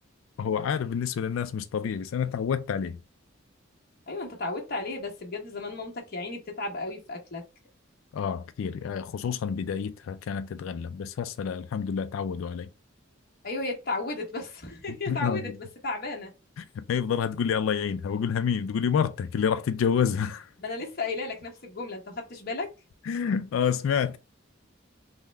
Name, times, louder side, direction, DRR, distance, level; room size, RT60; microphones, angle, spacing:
voice 1, 0.4-3.0 8.1-12.7 15.1-15.4 16.6-20.5 23.1-24.2, left 7 dB, 80° left, 0.3 m, -28 dB
voice 2, 4.1-7.4 13.4-15.5 15.8-16.3 20.6-22.7, left 3 dB, 50° left, 1.1 m, -34 dB
3.6 x 2.1 x 3.3 m
head